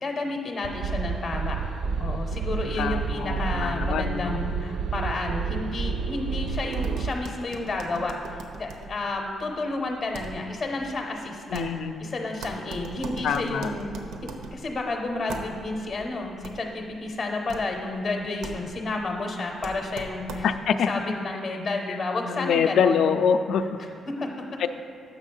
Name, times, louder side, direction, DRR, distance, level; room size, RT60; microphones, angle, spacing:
voice 1, 0.0-1.6 2.0-11.7 12.0-13.9 14.2-23.1 23.8-24.4, left 2 dB, 25° left, 2 dB, 0.6 m, -31 dB
sound 1, 0.6-7.1, right 5 dB, 60° right, 0.4 m, -30 dB
voice 2, 2.8-4.4 11.5-12.1 13.2-13.7 20.4-20.9 22.3-23.6 24.6-24.7, left 7 dB, 60° left, 9 dB, 0.4 m, -25 dB
sound 2, 6.7-20.8, right 3 dB, 85° right, 0.7 m, -41 dB
7.2 x 6.3 x 5.4 m, 2.6 s
cardioid pair, 170°, 0 cm